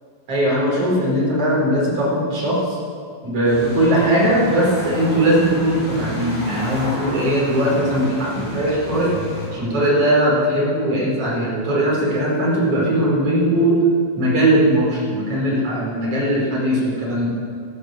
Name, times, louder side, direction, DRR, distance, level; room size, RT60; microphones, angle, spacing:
voice 1, 0.3-2.8 3.2-9.1 9.5-13.8 14.2-17.3, right 1 dB, 35° right, -5 dB, 5.7 m, -19 dB
sound 1, 3.4-9.5, left 1 dB, 25° left, 5.0 m, -32 dB
13.5 x 13.0 x 8.0 m, 2.2 s
omnidirectional pair, 5.2 m